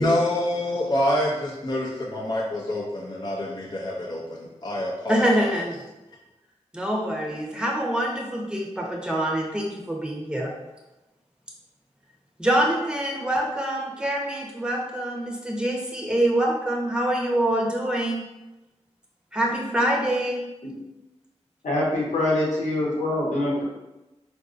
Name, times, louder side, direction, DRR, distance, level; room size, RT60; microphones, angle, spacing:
voice 1, 0.0-5.6, left 1 dB, 35° left, -4 dB, 0.5 m, -27 dB
voice 2, 5.1-5.8 6.7-10.5 12.4-18.2 19.3-20.4, right 1 dB, 10° right, -1 dB, 0.8 m, -25 dB
voice 3, 21.6-23.6, left 1 dB, 85° left, -5 dB, 0.9 m, -24 dB
3.7 x 2.6 x 2.4 m, 1.0 s
cardioid pair, 45°, 12 cm